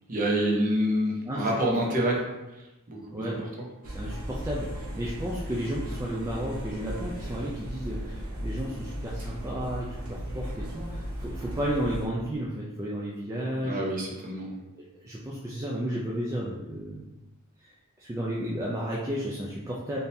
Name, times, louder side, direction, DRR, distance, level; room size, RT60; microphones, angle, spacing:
voice 1, 0.1-2.2 2.9-3.3 13.6-14.6, right 1 dB, 40° right, -2 dB, 0.7 m, -27 dB
sound 1, 3.8-12.1, equal, 80° right, 0.8 m, -36 dB
voice 2, 3.9-14.0 15.0-17.0 17.6-17.7 18.0-20.0, equal, 15° right, -5 dB, 0.3 m, -33 dB
3.6 x 2.7 x 2.6 m, 1.0 s
head